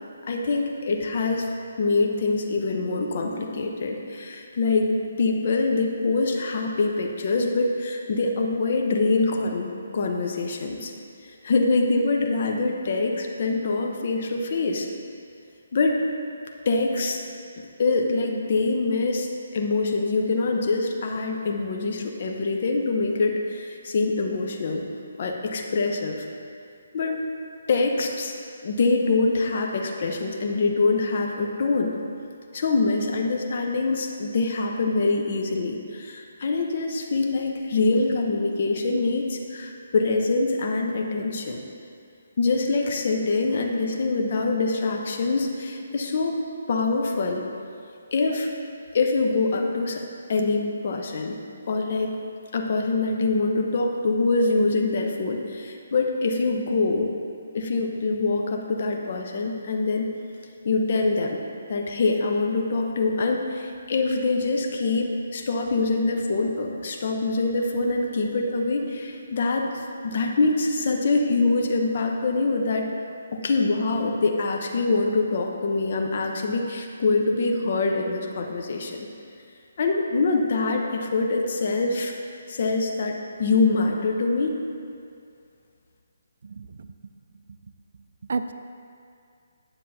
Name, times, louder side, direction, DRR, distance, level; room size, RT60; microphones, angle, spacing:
voice 1, 0.2-1.5 1.8-10.9 11.4-14.9 15.7-16.0 16.7-17.2 17.8-24.8 25.2-26.3 26.9-27.2 27.7-28.3 28.6-31.9 32.5-41.7 42.4-46.3 46.7-47.5 48.1-48.5 48.9-50.0 50.3-51.4 51.7-52.2 52.5-57.1 57.5-60.1 60.6-61.4 61.7-72.9 73.3-79.1 79.8-82.1 82.5-84.5, left 3 dB, 50° left, 2 dB, 0.7 m, -24 dB
voice 2, 86.4-86.9 88.3-88.5, right 4 dB, 65° right, 9 dB, 0.3 m, -30 dB
9.7 x 7.2 x 2.7 m, 2.4 s
hypercardioid pair, 160°, 0 cm